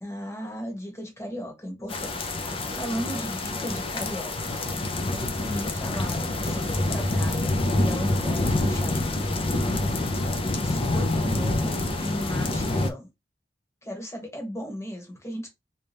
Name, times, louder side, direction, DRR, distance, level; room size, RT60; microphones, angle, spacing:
voice 1, 0.0-4.3 5.4-9.4 10.5-13.1 13.8-15.5, equal, 15° left, 1.3 m, -36 dB
sound 1, 1.9-12.9, left 2 dB, 30° left, 0.6 m, -27 dB
3.3 x 2.7 x 3.4 m
head